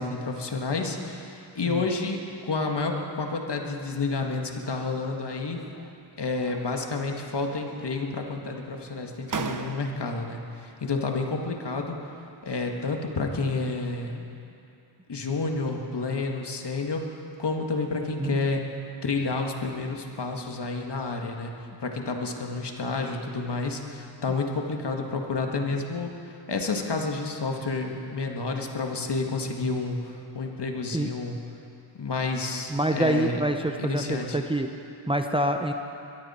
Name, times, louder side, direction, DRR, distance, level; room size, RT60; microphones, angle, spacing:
voice 1, 0.0-5.6 6.2-12.0 12.4-14.3 15.1-17.0 17.4-18.6 19.0-26.1 26.5-31.4 31.9-33.4 33.8-34.4, left 3 dB, 55° left, 2 dB, 1.8 m, -30 dB
sound 1, 5.4-6.0 6.4-7.2 7.5-8.2 8.9-9.0 9.3-10.2, right 5 dB, 40° right, 0.9 m, -38 dB
voice 2, 32.7-34.7 35.1-35.7, right 1 dB, 10° right, 5 dB, 0.8 m, -26 dB
21.5 x 13.5 x 4.3 m, 2.7 s
cardioid pair, 60°, 49 cm